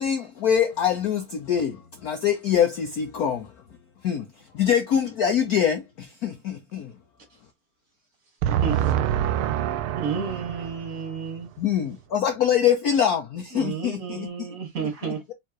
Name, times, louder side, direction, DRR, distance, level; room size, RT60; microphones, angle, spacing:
voice 1, 0.0-3.5 4.0-4.3 4.5-6.9 11.6-14.3, left 8 dB, 70° left, 0.9 m, -24 dB
voice 2, 8.4-11.5, right 10 dB, 80° right, 1.4 m, -26 dB
voice 3, 10.0-11.5 13.5-15.3, right 6 dB, 40° right, 2.0 m, -31 dB
4.5 x 3.7 x 2.9 m
omnidirectional pair, 2.3 m